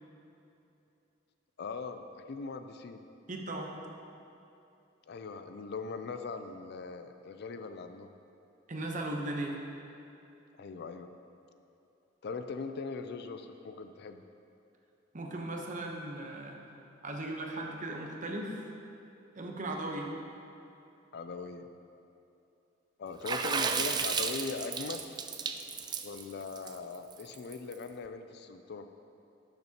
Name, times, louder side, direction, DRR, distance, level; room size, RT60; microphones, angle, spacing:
voice 1, 1.6-3.0 5.1-8.1 10.6-11.1 12.2-14.2 21.1-21.7 23.0-25.0 26.0-28.9, left 4 dB, 60° left, 8 dB, 0.4 m, -40 dB
voice 2, 3.3-3.7 8.7-9.6 15.1-16.6 17.0-18.6 19.4-20.1, right 1 dB, 40° right, 1 dB, 0.9 m, -37 dB
Water / Splash splatter, 23.2-27.7, right 5 dB, 20° right, 0.3 m, -33 dB
12.0 x 6.9 x 2.9 m, 2.8 s
head